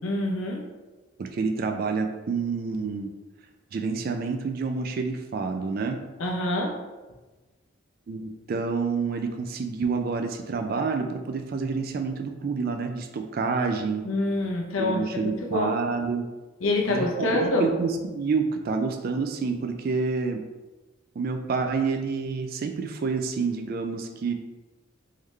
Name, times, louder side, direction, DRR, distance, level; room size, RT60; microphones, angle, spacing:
voice 1, 0.0-0.6 6.2-6.8 14.0-15.7 16.6-17.7, left 2 dB, 85° left, 0 dB, 0.7 m, -26 dB
voice 2, 1.2-3.1 3.7-6.0 8.1-14.1 14.8-16.3 16.9-20.4 21.2-24.3, right 4 dB, 45° right, 5 dB, 0.3 m, -28 dB
3.7 x 3.3 x 3.1 m, 1.2 s
head